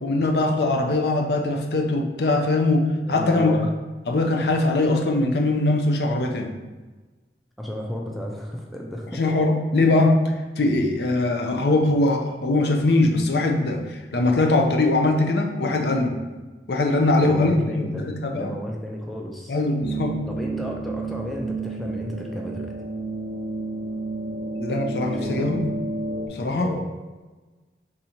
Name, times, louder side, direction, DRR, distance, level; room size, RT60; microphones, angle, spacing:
voice 1, 0.0-3.6 4.1-6.5 9.2-16.2 16.7-18.5 19.5-20.2 24.6-25.6 26.3-26.7, left 2 dB, 70° left, 2 dB, 0.6 m, -21 dB
voice 2, 3.0-3.7 7.6-9.2 17.2-18.0 18.3-19.6 20.3-22.8 25.2-25.5 26.6-26.9, equal, ahead, -1 dB, 0.4 m, -33 dB
sound 1, 19.8-26.3, right 2 dB, 75° right, 0.4 m, -31 dB
3.7 x 2.7 x 4.4 m, 1.3 s
head